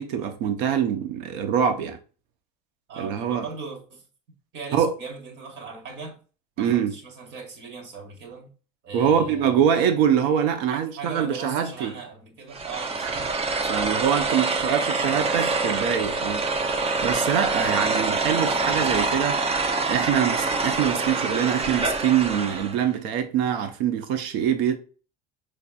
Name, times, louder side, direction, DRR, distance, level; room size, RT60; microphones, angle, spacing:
voice 1, 0.0-2.0 3.0-3.4 4.7-4.9 6.6-6.9 8.9-11.9 13.7-16.4 17.0-19.4 19.9-24.8, right 8 dB, 75° right, 0.9 m, -24 dB
voice 2, 2.9-4.1 4.5-6.2 6.6-8.5 8.8-9.7 10.7-13.3 14.2-16.1 17.5-18.0, right 4 dB, 55° right, 1.9 m, -39 dB
sound 1, 12.5-22.8, right 3 dB, 30° right, 0.7 m, -25 dB
5.3 x 3.4 x 2.4 m
supercardioid pair, 85°, 21 cm